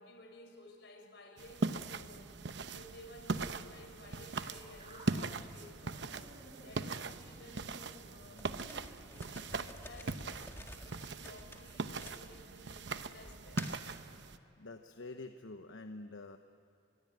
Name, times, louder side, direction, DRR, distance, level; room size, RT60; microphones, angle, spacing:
voice 1, 0.0-1.7 2.0-13.8, left 1 dB, 65° left, 5 dB, 4.7 m, -56 dB
sound 1, 1.4-14.4, right 3 dB, 65° right, 0.9 m, -40 dB
sound 2, 4.8-9.7, equal, 30° right, 5.4 m, -56 dB
sound 3, 8.4-12.7 13.2-13.9, left 2 dB, 15° left, 1.8 m, -50 dB
voice 2, 14.6-16.4, left 2 dB, 85° left, 7 dB, 1.0 m, -47 dB
27.0 x 21.0 x 9.4 m, 2.8 s
head